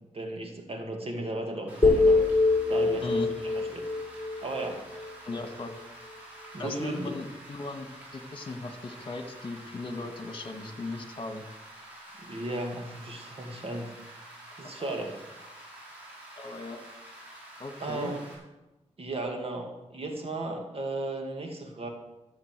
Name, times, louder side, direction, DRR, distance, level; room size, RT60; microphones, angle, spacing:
voice 1, 0.1-2.3 2.7-3.8 4.4-4.8 6.5-7.1 12.2-13.9 14.6-15.1 17.8-18.2 19.0-21.9, right 2 dB, 50° right, 2 dB, 2.3 m, -35 dB
Rain, 1.7-18.3, right 1 dB, 10° right, 5.9 m, -48 dB
sound 1, 1.8-5.9, left 3 dB, 15° left, 2.6 m, -25 dB
voice 2, 5.3-5.7 6.6-11.5 16.3-16.8 17.6-18.2, left 3 dB, 40° left, 6 dB, 1.8 m, -37 dB
14.0 x 7.3 x 7.6 m, 1.0 s
wide cardioid pair, 115°, 13 cm